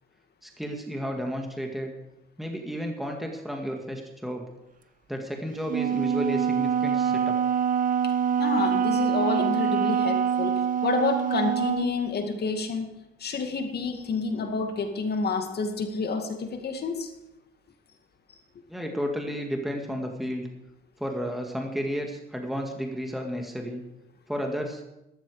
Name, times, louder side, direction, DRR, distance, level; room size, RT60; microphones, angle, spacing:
voice 1, 0.4-1.9 2.4-4.5 5.1-7.4 18.7-20.5 21.0-23.8 24.3-24.8, equal, ahead, 2 dB, 2.1 m, -32 dB
Wind instrument woodwind instrument, 5.7-12.0, right 8 dB, 45° right, 0.6 m, -25 dB
voice 2, 8.4-12.9 13.2-17.1, left 4 dB, 55° left, 5 dB, 2.1 m, -29 dB
13.5 x 12.5 x 5.0 m, 0.92 s
cardioid pair, 90°, 20 cm